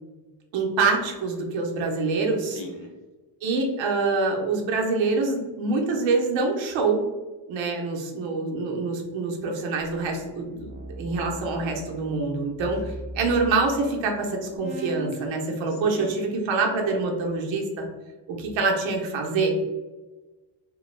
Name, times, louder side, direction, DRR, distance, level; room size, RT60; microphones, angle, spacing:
voice 1, 0.5-2.6 3.4-7.0 7.5-17.9 18.3-19.5, right 3 dB, 75° right, 1 dB, 0.8 m, -25 dB
voice 2, 2.4-3.0 15.7-16.2, left 3 dB, 65° left, 2 dB, 0.8 m, -41 dB
sound 1, 9.8-14.1 14.5-15.3, right 2 dB, 15° right, 0.4 m, -39 dB
2.9 x 2.2 x 3.2 m, 1.2 s
cardioid pair, 140°, 46 cm